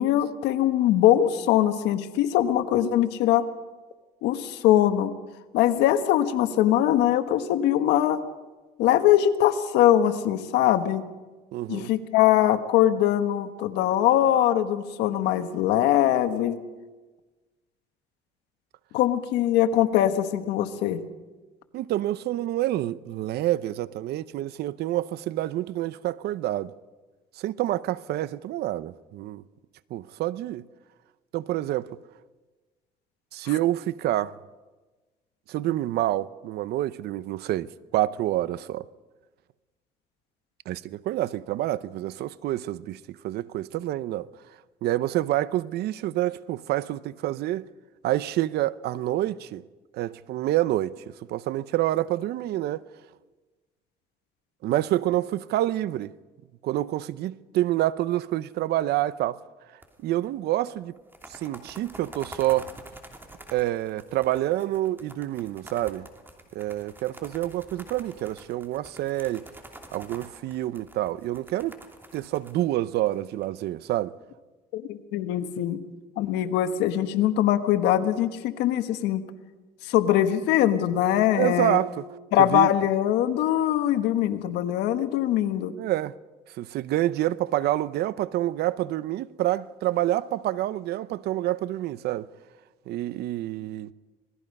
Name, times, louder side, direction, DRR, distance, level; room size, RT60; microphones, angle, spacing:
voice 1, 0.0-3.4 4.2-5.1 5.5-8.2 8.8-11.0 11.7-16.6 18.9-21.0 74.7-75.8 76.2-79.2 79.8-81.8 82.3-85.7, left 12 dB, 90° left, 1.4 m, -22 dB
voice 2, 11.5-11.9 21.7-26.7 27.4-29.4 29.9-30.7 31.3-31.9 33.3-34.4 35.5-38.8 40.7-44.3 44.8-47.7 48.0-49.6 49.9-51.0 51.3-52.8 54.6-56.1 56.6-59.4 60.0-60.9 61.3-62.7 63.5-66.1 66.5-69.5 69.9-71.8 72.1-74.1 81.3-82.0 82.4-82.7 85.8-86.1 86.6-92.3 92.9-93.9, right 14 dB, 75° right, 0.8 m, -27 dB
sound 1, 59.8-60.3 60.5-60.6 61.0-73.4, right 1 dB, 10° right, 2.8 m, -47 dB
26.5 x 19.5 x 5.4 m
cardioid pair, 110°, 17 cm